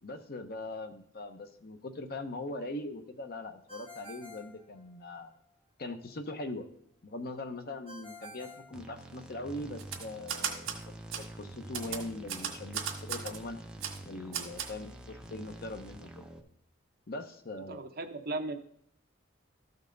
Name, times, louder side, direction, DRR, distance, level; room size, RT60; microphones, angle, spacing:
voice 1, 0.0-5.3 5.8-6.7 7.0-10.8 11.2-13.6 14.0-16.3 17.1-17.8, left 2 dB, 50° left, 7 dB, 0.8 m, -41 dB
Ringtone, 3.7-5.4 7.9-9.5, left 1 dB, 30° left, 2.2 m, -50 dB
sound 1, 8.7-16.4, right 1 dB, 5° right, 0.7 m, -47 dB
Typewriter, 9.8-10.8 11.1-11.3 11.7-13.4 13.8-14.0 14.3-14.7, right 8 dB, 75° right, 1.6 m, -36 dB
voice 2, 17.7-18.6, right 2 dB, 50° right, 5 dB, 0.8 m, -36 dB
13.5 x 5.4 x 3.9 m, 0.66 s
head